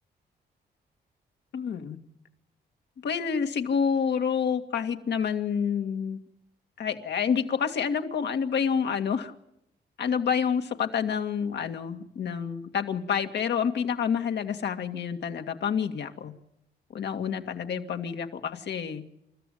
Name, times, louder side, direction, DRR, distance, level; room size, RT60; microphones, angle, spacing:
voice 1, 1.5-2.0 3.0-6.2 6.8-9.3 10.0-16.3 16.9-19.0, left 7 dB, 70° left, 6 dB, 2.1 m, -28 dB
29.5 x 14.0 x 9.3 m, 0.79 s
cardioid pair, 80°, 18 cm